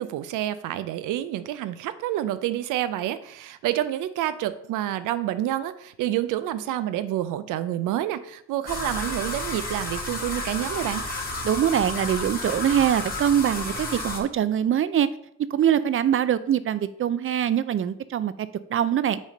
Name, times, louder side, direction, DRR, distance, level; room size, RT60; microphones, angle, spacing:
voice 1, 0.0-11.0, right 13 dB, 90° right, 13 dB, 0.6 m, -28 dB
sound 1, 8.7-14.2, left 2 dB, 30° left, 1.7 m, -31 dB
voice 2, 11.4-15.1 15.4-19.2, right 9 dB, 45° right, 15 dB, 0.5 m, -23 dB
6.1 x 4.2 x 5.0 m, 0.71 s
cardioid pair, 90°, 30 cm